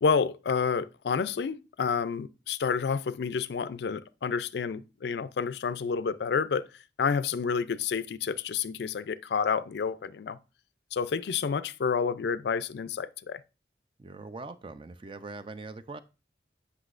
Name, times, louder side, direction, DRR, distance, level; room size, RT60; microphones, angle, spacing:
voice 1, 0.0-6.7 7.0-10.4 10.9-13.4, left 6 dB, 70° left, 0.4 m, -29 dB
voice 2, 14.0-16.0, right 3 dB, 30° right, 0.4 m, -42 dB
8.1 x 5.6 x 2.4 m
head